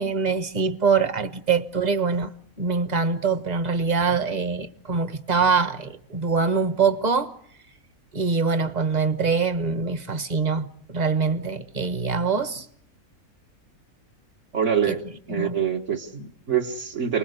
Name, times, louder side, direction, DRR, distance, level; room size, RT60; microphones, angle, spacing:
voice 1, 0.0-2.3 2.6-7.3 8.1-12.7 14.9-15.0 15.3-15.6, right 5 dB, 30° right, 1.1 m, -24 dB
voice 2, 14.5-15.0 15.3-17.2, right 8 dB, 55° right, 1.7 m, -25 dB
28.5 x 20.5 x 8.0 m
omnidirectional pair, 1.5 m